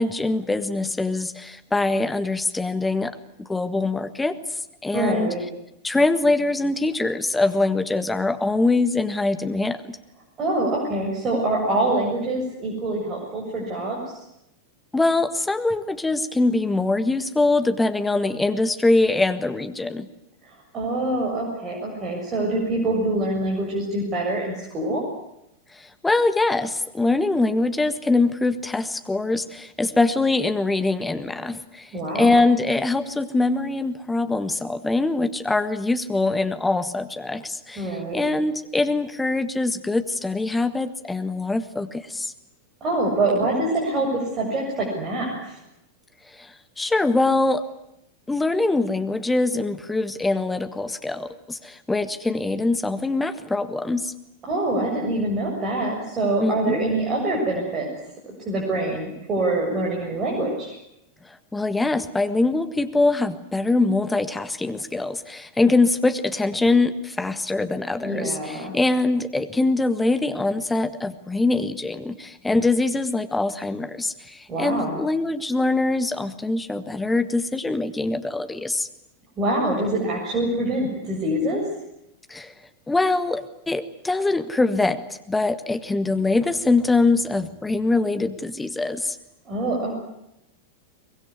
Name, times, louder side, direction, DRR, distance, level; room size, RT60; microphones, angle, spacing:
voice 1, 0.0-4.4 4.8-5.3 5.8-9.9 14.9-20.1 25.7-42.3 46.3-47.6 48.3-54.1 56.4-56.8 61.5-78.9 82.3-82.5 82.9-89.2, left 2 dB, 10° left, 10 dB, 1.6 m, -23 dB
voice 2, 4.9-5.4 10.4-14.0 20.4-25.0 31.9-32.4 37.8-38.2 42.8-45.6 54.4-57.9 58.3-60.7 68.0-68.7 74.5-75.0 79.4-81.6 89.5-89.9, right 2 dB, 25° right, -2 dB, 7.3 m, -25 dB
23.5 x 21.5 x 9.8 m, 0.83 s
figure-of-eight pair, 90°, 0 cm